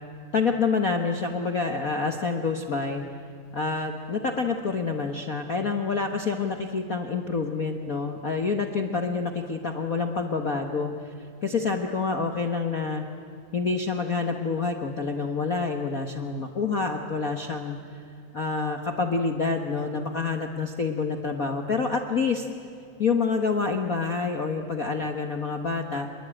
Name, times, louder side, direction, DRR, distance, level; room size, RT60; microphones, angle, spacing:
voice 1, 0.3-3.0 3.5-11.1 11.4-13.0 13.5-18.0 18.3-22.5 23.0-26.1, left 4 dB, 60° left, 4 dB, 0.9 m, -27 dB
26.5 x 22.0 x 9.0 m, 2.6 s
omnidirectional pair, 3.5 m